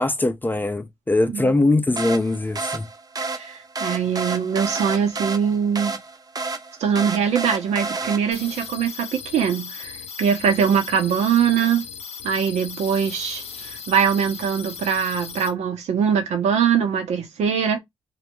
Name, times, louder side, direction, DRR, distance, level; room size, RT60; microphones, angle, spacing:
voice 1, 0.0-2.9, left 2 dB, 15° left, 0.4 m, -21 dB
sound 1, 2.0-8.6, right 3 dB, 35° right, 0.7 m, -30 dB
voice 2, 3.3-6.0 6.8-11.9 12.2-17.8, right 7 dB, 80° right, 0.7 m, -22 dB
sound 2, 8.3-15.5, left 6 dB, 65° left, 0.7 m, -37 dB
2.2 x 2.1 x 3.0 m
supercardioid pair, 55°, 11 cm